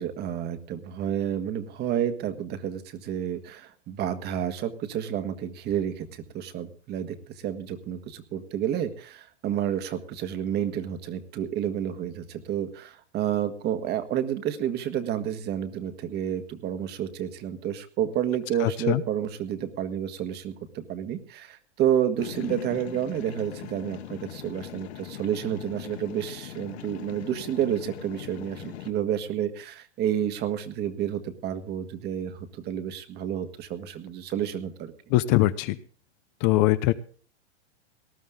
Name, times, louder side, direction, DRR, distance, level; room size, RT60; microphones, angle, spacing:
voice 1, 0.0-34.9, right 10 dB, 30° right, 10 dB, 1.6 m, -30 dB
voice 2, 18.6-19.0 35.1-35.8 36.4-36.9, left 17 dB, 40° left, 13 dB, 0.8 m, -22 dB
sound 1, 22.2-28.9, left 13 dB, 65° left, 1.9 m, -40 dB
19.0 x 12.5 x 3.7 m, 0.42 s
supercardioid pair, 145°, 34 cm